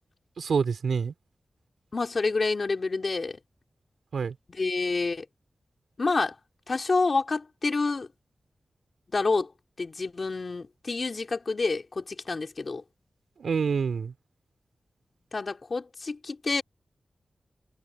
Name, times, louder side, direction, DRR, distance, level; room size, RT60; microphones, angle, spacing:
voice 1, 0.4-1.1 4.1-4.3 13.4-14.1, right 5 dB, 90° right, 3.7 m, -27 dB
voice 2, 1.9-3.4 4.5-5.2 6.0-6.3 6.7-8.1 9.1-9.5 9.8-12.8 15.3-16.6, left 3 dB, 50° left, 3.5 m, -28 dB
wide cardioid pair, 85°, 0 cm